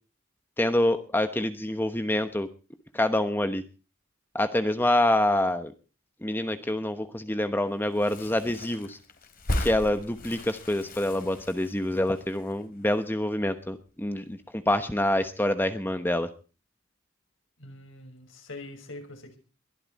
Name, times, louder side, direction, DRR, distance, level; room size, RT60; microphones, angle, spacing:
voice 1, 0.6-2.5 2.9-3.6 4.3-5.7 6.2-9.0 9.6-16.3, left 1 dB, 10° left, 9 dB, 1.0 m, -26 dB
sound 1, 7.9-13.5 13.8-13.9 14.1-15.0 15.3-15.5, left 1 dB, 45° left, 3.2 m, -37 dB
voice 2, 17.6-19.4, left 2 dB, 65° left, 4 dB, 6.2 m, -43 dB
22.0 x 13.0 x 4.1 m, 0.36 s
head